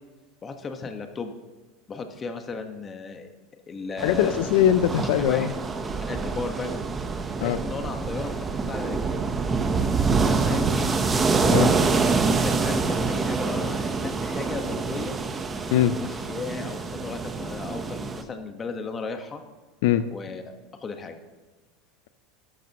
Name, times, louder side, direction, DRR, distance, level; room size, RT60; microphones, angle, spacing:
voice 1, 0.4-1.3 1.9-3.3 3.7-4.4 5.2-5.5 5.8-6.8 7.4-9.2 10.2-10.9 11.9-15.2 15.9-19.4 20.1-21.2, left 4 dB, 25° left, 6 dB, 1.4 m, -35 dB
voice 2, 4.0-5.5 7.4-7.6 11.5-11.7 15.7-16.0 19.8-20.1, left 11 dB, 75° left, 12 dB, 0.5 m, -21 dB
sound 1, 4.0-18.2, right 4 dB, 20° right, 1.0 m, -26 dB
12.5 x 12.0 x 3.1 m, 1.3 s
supercardioid pair, 115°, 0 cm